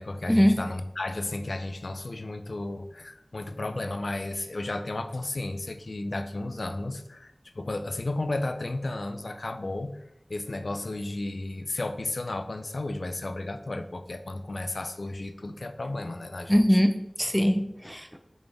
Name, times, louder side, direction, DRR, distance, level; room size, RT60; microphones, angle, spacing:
voice 1, 0.0-10.0 10.3-16.8, left 2 dB, 80° left, 9 dB, 0.5 m, -33 dB
voice 2, 16.5-18.2, equal, 5° left, 7 dB, 0.6 m, -22 dB
6.9 x 4.2 x 3.4 m, 0.81 s
wide cardioid pair, 50°, 0 cm